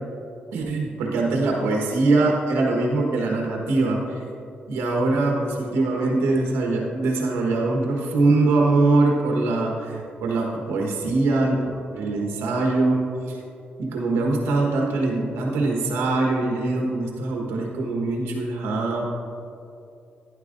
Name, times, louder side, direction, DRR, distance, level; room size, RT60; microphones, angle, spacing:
voice 1, 0.5-4.2 4.7-11.6 11.9-13.4 13.8-19.0, right 2 dB, 85° right, 0 dB, 1.3 m, -22 dB
11.5 x 10.0 x 2.6 m, 2.6 s
supercardioid pair, 60°, 4 cm